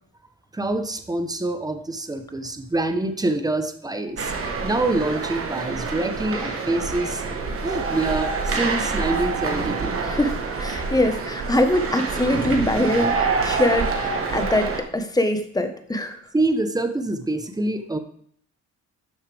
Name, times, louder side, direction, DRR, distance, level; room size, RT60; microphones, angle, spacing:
voice 1, 0.5-4.3 4.6-7.2 7.6-9.9 16.3-18.0, right 2 dB, 10° right, 8 dB, 1.0 m, -25 dB
sound 1, 4.2-14.8, right 4 dB, 45° right, 1.5 m, -27 dB
voice 2, 10.0-10.3 10.6-16.2, left 1 dB, 10° left, 7 dB, 1.2 m, -23 dB
12.0 x 6.4 x 3.5 m, 0.63 s
cardioid pair, 90°, 30 cm